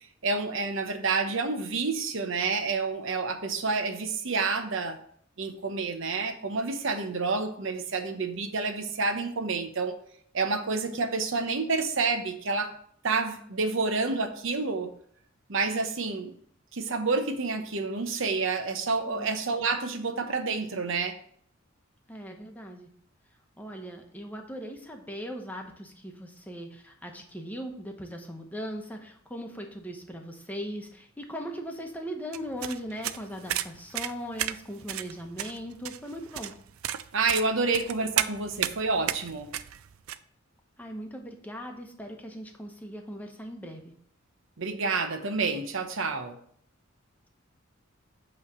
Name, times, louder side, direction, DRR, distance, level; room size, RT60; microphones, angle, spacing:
voice 1, 0.2-5.0 5.4-9.9 10.3-12.7 13.0-14.9 15.5-16.3 16.7-21.2 37.1-39.5 44.6-46.4, right 4 dB, 70° right, 7 dB, 0.9 m, -29 dB
voice 2, 22.1-22.9 23.6-36.5 40.8-43.9, equal, 10° left, 3 dB, 1.0 m, -39 dB
sound 1, 32.3-40.2, right 12 dB, 85° right, 0.4 m, -33 dB
8.2 x 3.3 x 6.1 m, 0.62 s
head